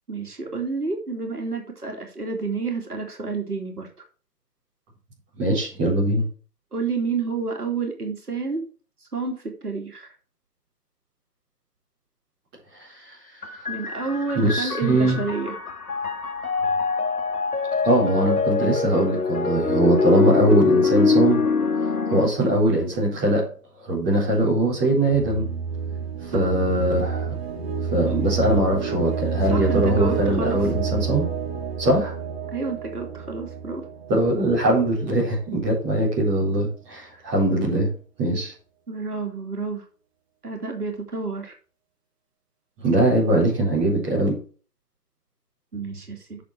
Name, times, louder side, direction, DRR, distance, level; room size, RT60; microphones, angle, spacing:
voice 1, 0.1-3.9 6.7-8.6 9.1-10.1 13.7-15.5 26.3-26.5 29.5-30.6 32.5-33.8 37.1-37.2 38.9-39.8 40.4-41.6 45.7-46.4, right 4 dB, 70° right, 2 dB, 2.9 m, -29 dB
voice 2, 5.4-6.2 14.3-15.2 17.8-21.4 22.1-23.5 23.8-25.5 26.3-27.3 27.9-31.3 31.8-32.1 34.1-37.9 38.2-38.5 42.8-44.4, right 1 dB, 15° right, -5 dB, 4.4 m, -21 dB
sound 1, 13.4-22.3, left 5 dB, 65° left, 2.1 m, -24 dB
sound 2, 25.1-34.9, right 6 dB, 40° right, 1.7 m, -29 dB
8.5 x 6.4 x 4.8 m, 0.38 s
figure-of-eight pair, 150°, 48 cm